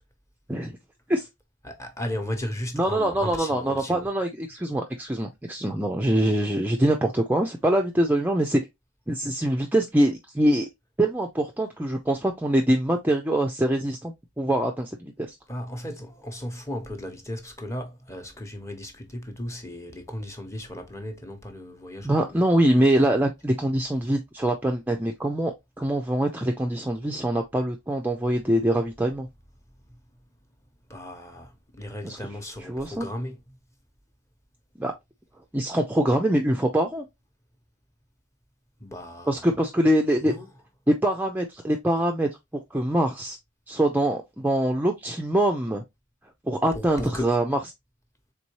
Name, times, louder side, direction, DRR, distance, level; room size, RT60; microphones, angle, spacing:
voice 1, 1.6-4.1 15.5-22.4 30.9-33.4 38.8-39.5 40.2-40.5 46.7-47.4, left 1 dB, 15° left, 0.9 m, -35 dB
voice 2, 2.7-8.6 9.1-10.7 11.0-15.3 22.0-29.3 32.0-32.2 32.7-33.1 34.8-34.9 35.5-37.0 39.3-40.3 40.9-42.3 42.7-43.4 43.7-45.8 46.5-47.6, right 1 dB, 10° right, 0.4 m, -24 dB
4.1 x 3.7 x 3.0 m
head